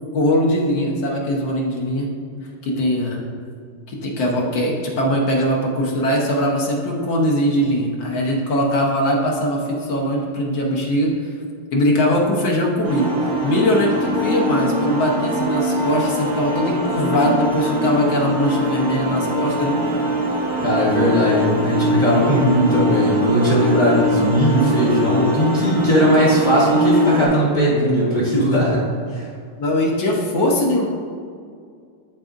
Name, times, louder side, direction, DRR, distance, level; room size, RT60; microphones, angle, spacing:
voice 1, 0.1-2.1 2.6-3.2 3.9-11.1 11.7-13.1 13.4-19.8 29.6-30.8, equal, 65° left, -2 dB, 1.5 m, -21 dB
sound 1, 12.8-27.3, equal, 75° right, 2.3 m, -22 dB
voice 2, 20.6-29.3, equal, 45° left, -6 dB, 1.5 m, -18 dB
11.5 x 4.1 x 2.5 m, 2.2 s
omnidirectional pair, 2.3 m